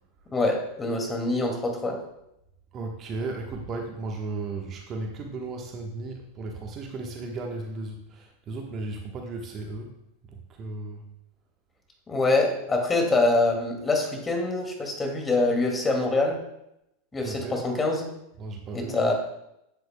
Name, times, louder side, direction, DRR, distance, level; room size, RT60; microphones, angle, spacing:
voice 1, 0.3-2.0 12.1-16.4 17.1-18.1 18.7-19.1, left 2 dB, 20° left, 2 dB, 2.2 m, -25 dB
voice 2, 2.7-9.9 10.3-11.1 17.2-17.7 18.4-19.1, right 3 dB, 35° right, 2 dB, 1.1 m, -35 dB
9.2 x 8.2 x 2.2 m, 0.82 s
figure-of-eight pair, 90°, 0 cm